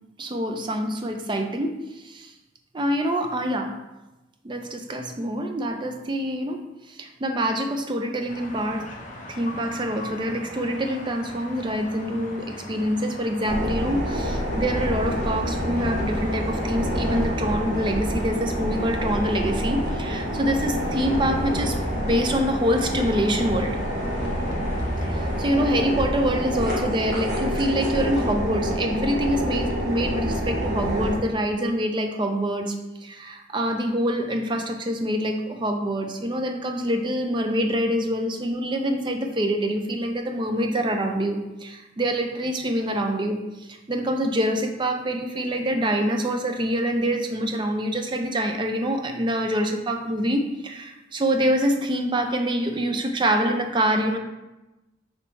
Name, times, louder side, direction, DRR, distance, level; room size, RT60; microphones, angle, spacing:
voice 1, 0.2-2.3 2.7-3.7 4.4-6.6 6.9-8.8 9.3-23.8 25.0-32.8 33.0-54.2, equal, 25° right, 4 dB, 0.4 m, -25 dB
sound 1, 8.3-25.5, left 1 dB, 40° left, 0.8 m, -40 dB
sound 2, 13.4-31.2, equal, 55° right, 1.0 m, -27 dB
5.4 x 3.2 x 3.1 m, 1.0 s
head